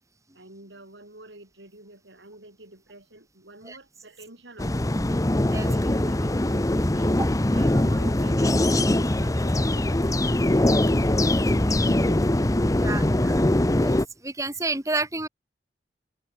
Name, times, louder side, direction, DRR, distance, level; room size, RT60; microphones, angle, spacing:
voice 1, 0.3-4.9 5.5-7.2 7.5-12.3 12.9-13.7, right 2 dB, 80° right, 7.8 m, -47 dB
sound 1, 4.6-14.0, left 1 dB, 20° left, 0.8 m, -22 dB
voice 2, 14.2-15.3, right 2 dB, 20° right, 4.9 m, -29 dB
head